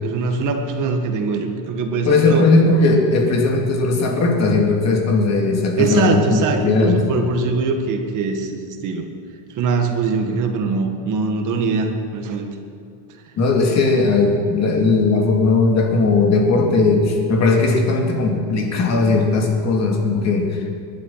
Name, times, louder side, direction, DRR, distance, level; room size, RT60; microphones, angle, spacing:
voice 1, 0.0-2.5 5.8-9.1 9.5-12.5, right 4 dB, 35° right, 4 dB, 1.9 m, -22 dB
voice 2, 2.0-7.0 13.4-20.6, left 3 dB, 30° left, 2 dB, 2.6 m, -17 dB
21.0 x 12.0 x 5.8 m, 2.6 s
cardioid pair, 160°, 49 cm